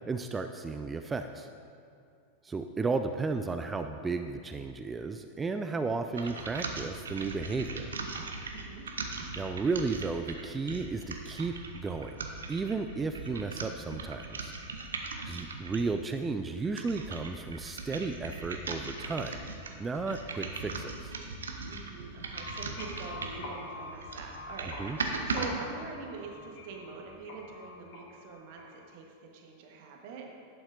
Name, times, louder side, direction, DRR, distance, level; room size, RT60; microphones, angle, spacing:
voice 1, 0.1-1.5 2.4-7.9 9.4-12.2 12.5-14.5 15.2-19.4 19.8-21.1 24.8-25.0, right 4 dB, 15° right, 7 dB, 0.3 m, -34 dB
sound 1, 6.1-16.0 16.5-23.5 23.9-25.5, right 3 dB, 70° right, 0.7 m, -39 dB
voice 2, 8.5-8.9 21.7-30.3, right 4 dB, 50° right, 1 dB, 1.2 m, -44 dB
sound 2, 22.2-29.0, left 1 dB, 45° left, 1.8 m, -45 dB
11.5 x 8.4 x 2.6 m, 2.5 s
figure-of-eight pair, 90°, 0 cm